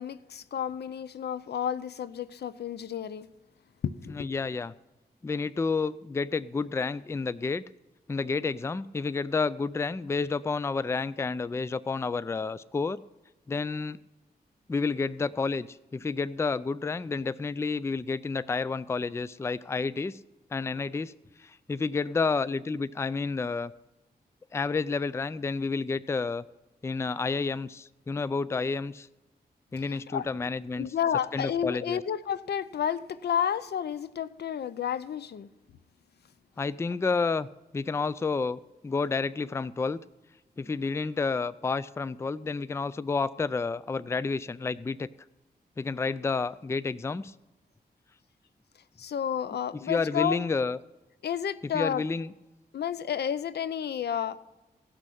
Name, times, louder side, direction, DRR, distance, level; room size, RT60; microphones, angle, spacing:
voice 1, 0.0-3.3 3.8-4.3 29.9-30.3 30.8-35.5 49.0-50.5 51.2-52.0 52.7-54.5, left 8 dB, 85° left, 15 dB, 0.6 m, -31 dB
voice 2, 4.1-4.7 5.2-7.6 8.1-13.0 13.5-14.0 14.7-20.2 20.5-21.1 21.4-23.7 24.5-26.4 26.8-29.1 29.7-32.0 36.6-37.5 37.7-40.0 40.6-45.1 45.8-47.3 49.7-50.8 51.6-52.3, left 4 dB, 15° left, 17 dB, 0.3 m, -30 dB
16.5 x 6.2 x 5.8 m, 1.1 s
wide cardioid pair, 110°, 17 cm